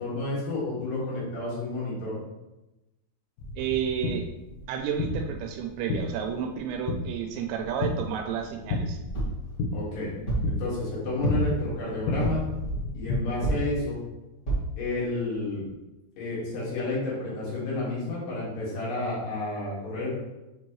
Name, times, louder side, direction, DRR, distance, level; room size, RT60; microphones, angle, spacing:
voice 1, 0.0-2.1 9.7-10.1 10.5-12.4 12.9-14.0 14.8-15.6 16.2-20.2, left 2 dB, 75° left, -7 dB, 3.9 m, -30 dB
sound 1, 3.4-13.2, left 2 dB, 90° left, 1.9 m, -33 dB
voice 2, 3.6-4.3 4.7-9.0, right 8 dB, 85° right, 4 dB, 2.8 m, -31 dB
sound 2, 9.1-9.4 10.3-10.6 11.2-11.6 12.2-12.5 13.4-13.8 14.5-14.7 15.3-15.4 15.7-15.8, right 2 dB, 40° left, 1.0 m, -28 dB
7.3 x 4.5 x 3.0 m, 1.0 s
omnidirectional pair, 5.0 m